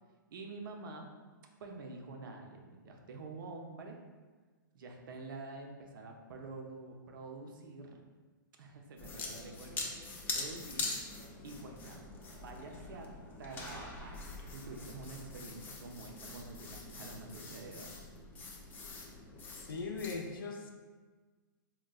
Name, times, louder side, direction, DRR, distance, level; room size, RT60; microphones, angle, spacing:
voice 1, 0.3-1.1 1.6-4.0 4.7-8.0 8.6-9.9 10.3-10.9 11.4-12.0 12.3-13.1 13.4-17.9, right 3 dB, 70° right, 2 dB, 0.5 m, -47 dB
sound 1, 9.0-20.2, left 3 dB, 15° left, 0.3 m, -44 dB
voice 2, 19.5-20.7, left 4 dB, 85° left, 3 dB, 0.5 m, -39 dB
4.1 x 2.2 x 2.3 m, 1.4 s
hypercardioid pair, 130°, 11 cm